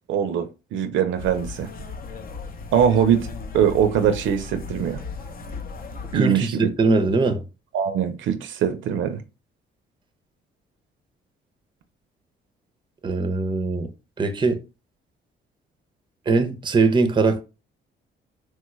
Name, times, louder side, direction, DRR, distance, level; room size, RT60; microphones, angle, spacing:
voice 1, 0.1-1.7 2.7-3.3 3.5-5.0 6.1-6.7 7.0-7.1 7.7-9.2, right 8 dB, 75° right, 0.5 m, -22 dB
sound 1, 1.2-6.2, left 4 dB, 45° left, 0.6 m, -36 dB
voice 2, 6.1-7.4 13.0-13.9 14.2-14.6 16.3-17.4, right 3 dB, 25° right, 0.5 m, -21 dB
3.1 x 2.3 x 3.0 m
cardioid pair, 90°, 20 cm